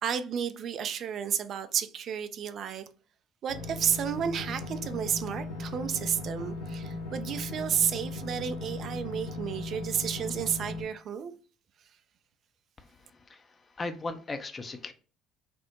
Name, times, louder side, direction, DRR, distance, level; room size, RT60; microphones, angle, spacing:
voice 1, 0.0-2.8 3.4-11.3, right 8 dB, 50° right, 0.3 m, -31 dB
sound 1, 3.5-10.8, left 2 dB, 75° left, 0.8 m, -37 dB
voice 2, 12.8-14.9, left 3 dB, 30° left, 0.5 m, -38 dB
3.4 x 2.0 x 2.9 m
figure-of-eight pair, 55°, 0 cm